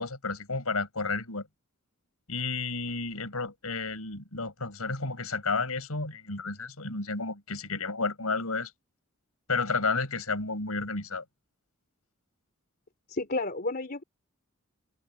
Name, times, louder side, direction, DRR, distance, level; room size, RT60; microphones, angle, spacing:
voice 1, 0.0-1.5 2.3-8.7 9.5-11.2, left 3 dB, 80° left, 5.7 m, -31 dB
voice 2, 13.1-14.0, left 2 dB, 45° left, 3.3 m, -31 dB
open air
head